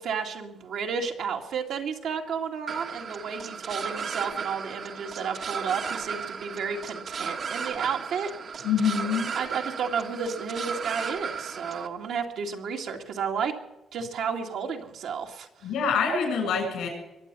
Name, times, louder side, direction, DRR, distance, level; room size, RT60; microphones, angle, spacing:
voice 1, 0.0-8.3 9.4-13.5 13.9-15.5, right 6 dB, 75° right, 2 dB, 2.3 m, -32 dB
sound 1, 2.7-11.9, right 6 dB, 55° right, 1.4 m, -35 dB
voice 2, 8.6-9.3 15.6-16.9, left 6 dB, 85° left, 4 dB, 7.4 m, -25 dB
22.5 x 8.0 x 6.9 m, 1.0 s
cardioid pair, 90°, 0 cm